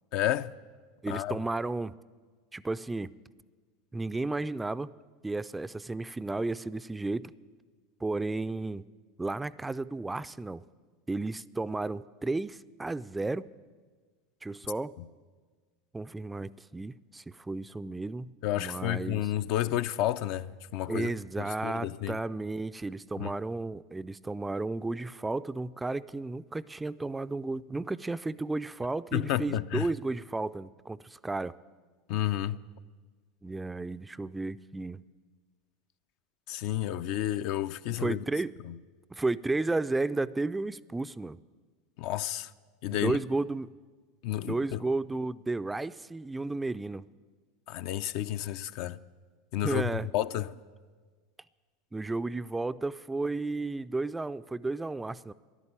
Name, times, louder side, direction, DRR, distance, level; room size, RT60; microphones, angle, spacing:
voice 1, 0.1-0.5 1.1-1.4 18.4-21.1 21.4-22.2 23.2-23.3 29.1-29.9 32.1-32.6 36.5-38.2 38.7-38.8 42.0-42.5 42.8-43.1 44.2-44.8 47.7-49.0 49.5-50.5, left 13 dB, 60° left, 0.4 m, -31 dB
voice 2, 1.0-1.9 2.5-3.1 3.9-4.9 5.2-7.3 8.0-8.9 9.2-10.6 11.1-13.5 14.4-14.9 15.9-19.2 20.9-31.5 33.4-35.0 37.9-38.5 39.1-41.4 42.9-43.7 44.4-47.1 49.6-50.1 51.9-55.3, right 2 dB, 10° right, 0.4 m, -33 dB
12.5 x 11.0 x 8.8 m
hypercardioid pair, 85°, 0 cm